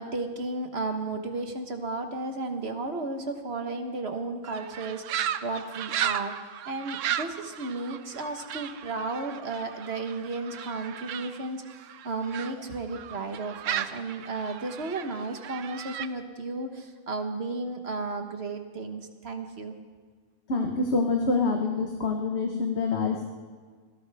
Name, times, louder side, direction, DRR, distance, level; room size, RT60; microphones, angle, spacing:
voice 1, 0.0-6.4 6.7-19.8, right 3 dB, 55° right, 5 dB, 1.5 m, -34 dB
sound 1, 4.5-12.5 12.9-16.1, right 10 dB, 75° right, 1.0 m, -35 dB
voice 2, 20.5-23.2, left 3 dB, 55° left, 1 dB, 1.5 m, -26 dB
24.5 x 17.0 x 3.5 m, 1.5 s
omnidirectional pair, 1.4 m